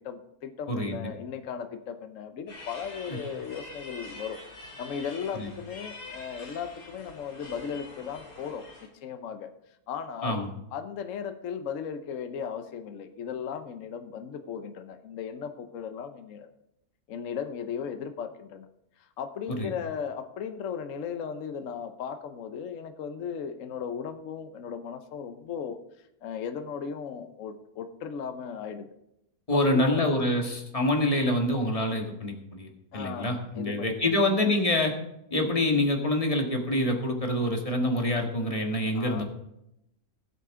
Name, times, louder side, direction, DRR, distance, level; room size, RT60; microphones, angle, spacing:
voice 1, 0.0-8.6 9.0-9.5 9.9-10.4 10.7-16.5 17.1-18.7 19.0-25.8 26.2-28.9 29.5-30.1 32.9-34.4 38.9-39.2, left 7 dB, 60° left, 8 dB, 1.2 m, -36 dB
sound 1, 2.5-8.9, left 2 dB, 85° left, 3.5 m, -45 dB
voice 2, 29.5-34.9 35.3-39.2, left 1 dB, 20° left, 2 dB, 1.8 m, -26 dB
18.5 x 8.5 x 3.7 m, 0.83 s
omnidirectional pair, 1.7 m